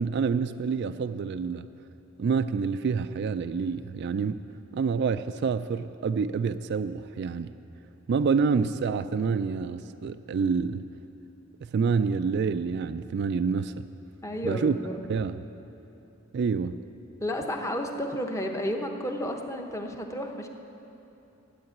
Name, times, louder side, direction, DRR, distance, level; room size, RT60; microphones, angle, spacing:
voice 1, 0.0-1.7 2.2-4.4 4.7-7.5 8.1-10.8 11.7-13.9 14.4-14.8 15.1-15.4 16.3-16.8, right 5 dB, 55° right, 11 dB, 0.3 m, -27 dB
voice 2, 14.2-15.0 17.2-20.5, equal, 15° left, 3 dB, 0.9 m, -32 dB
12.5 x 8.2 x 9.0 m, 2.9 s
head